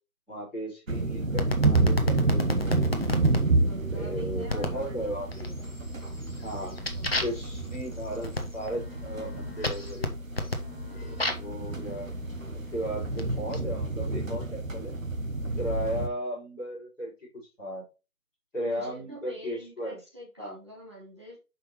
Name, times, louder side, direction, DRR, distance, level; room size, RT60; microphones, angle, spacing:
voice 1, 0.3-2.9 3.9-5.4 6.4-6.7 7.2-10.1 11.0-12.1 12.7-15.0 15.6-17.3 17.6-17.8 18.5-20.0 20.4-20.5, equal, ahead, -22 dB, 2.6 m, -36 dB
sound 1, 0.9-16.1, right 2 dB, 65° right, 1.2 m, -29 dB
sound 2, 1.4-3.4 4.5-4.8 5.3-5.8 6.2-11.6 12.4-13.6, left 1 dB, 45° left, 1.2 m, -33 dB
voice 2, 3.6-5.6 6.6-7.7 13.4-13.7 18.6-21.4, equal, 20° right, -5 dB, 1.6 m, -46 dB
7.0 x 5.7 x 3.1 m, 0.29 s
figure-of-eight pair, 165°, 44 cm